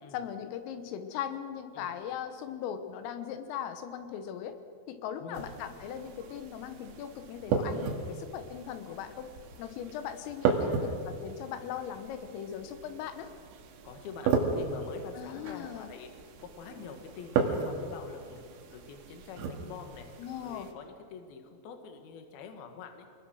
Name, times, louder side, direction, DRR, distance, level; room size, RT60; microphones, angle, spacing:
voice 1, 0.1-4.6 4.9-9.3 9.6-13.3 15.2-15.9 20.2-20.7, left 9 dB, 85° left, 8 dB, 3.8 m, -39 dB
voice 2, 5.2-5.5 10.5-11.0 13.8-16.1 16.4-18.4 18.7-23.2, left 6 dB, 60° left, 5 dB, 3.1 m, -46 dB
sound 1, 5.3-20.7, right 5 dB, 70° right, 4.0 m, -35 dB
27.0 x 20.5 x 6.4 m, 2.3 s
omnidirectional pair, 5.8 m